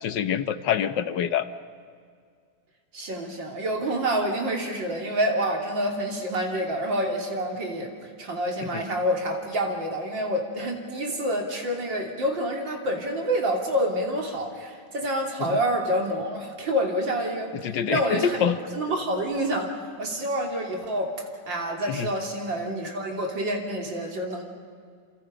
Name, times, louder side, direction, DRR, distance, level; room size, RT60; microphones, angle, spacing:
voice 1, 0.0-1.5 8.6-8.7 15.4-15.6 17.6-18.6 21.9-22.1, left 8 dB, 75° left, 12 dB, 1.6 m, -26 dB
voice 2, 2.9-24.4, equal, 85° right, 1 dB, 3.8 m, -28 dB
29.0 x 27.5 x 5.2 m, 2.1 s
omnidirectional pair, 2.0 m